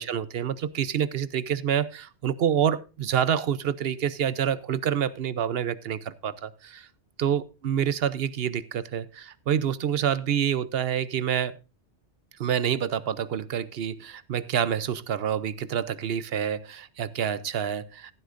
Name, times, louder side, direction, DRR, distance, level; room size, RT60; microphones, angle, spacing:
voice 1, 0.0-6.9 7.2-11.6 12.4-18.1, right 9 dB, 65° right, 16 dB, 0.9 m, -27 dB
15.0 x 11.5 x 2.5 m, 0.30 s
omnidirectional pair, 1.1 m